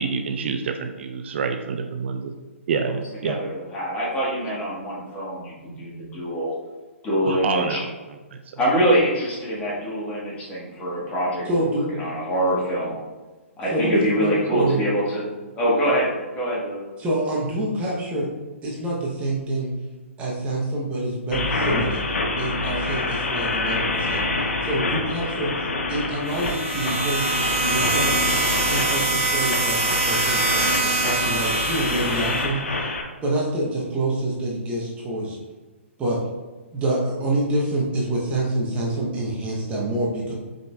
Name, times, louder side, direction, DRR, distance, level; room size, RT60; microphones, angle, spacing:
voice 1, 0.0-2.3 2.7-3.4 7.2-7.9 14.5-14.7, right 5 dB, 55° right, 6 dB, 0.3 m, -27 dB
voice 2, 2.8-6.5 7.0-7.8 8.6-13.0 13.6-15.2 15.6-16.8, equal, 20° left, -6 dB, 1.3 m, -24 dB
voice 3, 11.5-11.9 13.7-14.8 17.0-18.3 18.6-19.7 20.2-22.0 22.4-24.3 24.6-27.3 27.6-28.2 28.7-32.9 33.2-35.4 36.0-36.2 36.7-40.3, right 1 dB, 15° right, -4 dB, 0.8 m, -26 dB
sound 1, 21.3-33.0, left 3 dB, 75° left, 0.7 m, -26 dB
sound 2, 26.3-32.4, right 3 dB, 75° right, 1.5 m, -25 dB
5.0 x 3.9 x 2.3 m, 1.2 s
hypercardioid pair, 135°, 7 cm